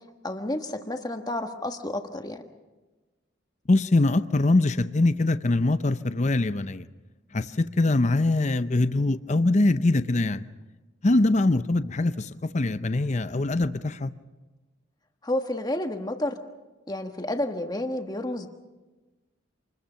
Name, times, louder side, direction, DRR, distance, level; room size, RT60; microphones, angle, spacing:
voice 1, 0.2-2.4 15.2-16.4 16.9-18.5, left 1 dB, 20° left, 5 dB, 1.4 m, -30 dB
voice 2, 3.7-6.9 7.3-10.4 11.0-14.1, left 2 dB, 35° left, 12 dB, 0.6 m, -23 dB
27.5 x 21.5 x 5.8 m, 1.2 s
head